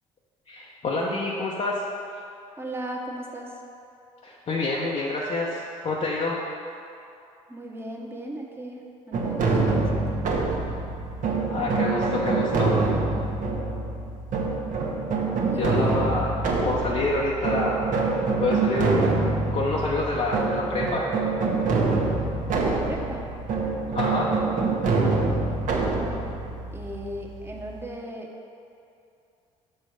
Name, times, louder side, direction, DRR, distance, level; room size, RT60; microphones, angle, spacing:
voice 1, 0.5-1.8 4.2-6.4 11.5-12.8 15.5-16.3 16.6-17.9 18.4-19.0 19.5-21.1 23.9-24.4, left 2 dB, 45° left, -4 dB, 0.8 m, -27 dB
voice 2, 2.6-3.6 7.5-10.3 15.5-15.9 22.6-23.3 25.8-28.3, right 1 dB, 15° right, 0 dB, 1.0 m, -37 dB
sound 1, 9.1-27.8, right 3 dB, 60° right, 1.0 m, -25 dB
6.2 x 4.5 x 4.7 m, 2.6 s
supercardioid pair, 65°, 15 cm